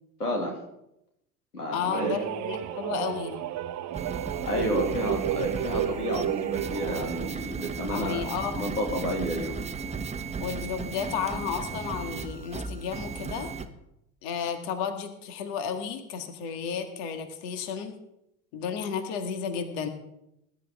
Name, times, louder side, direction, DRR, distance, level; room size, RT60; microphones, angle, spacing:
voice 1, 0.2-0.6 1.5-2.2 4.5-8.2 8.6-9.6, equal, 90° left, 0 dB, 2.4 m, -30 dB
voice 2, 1.7-3.5 7.9-8.8 10.4-13.5 14.2-18.0 18.5-19.9, left 7 dB, 55° left, 7 dB, 2.0 m, -32 dB
sound 1, 1.9-7.3, right 12 dB, 40° right, 1.0 m, -32 dB
sound 2, 3.9-13.7, right 5 dB, 15° right, 1.1 m, -36 dB
20.0 x 10.5 x 3.6 m, 0.84 s
figure-of-eight pair, 70°, 44 cm